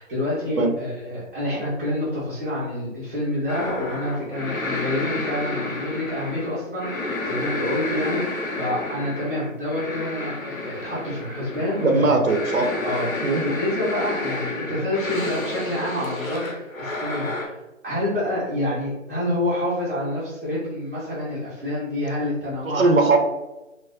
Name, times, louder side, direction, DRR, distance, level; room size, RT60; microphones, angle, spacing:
voice 1, 0.0-12.2 12.8-17.5 17.8-22.9, left 1 dB, 10° right, -11 dB, 0.5 m, -28 dB
sound 1, 3.5-17.5, left 2 dB, 90° left, 0.8 m, -30 dB
voice 2, 11.8-12.7 13.2-13.4 22.7-23.2, right 3 dB, 85° right, 4 dB, 0.7 m, -19 dB
3.1 x 2.2 x 2.6 m, 1.0 s
figure-of-eight pair, 145°, 40 cm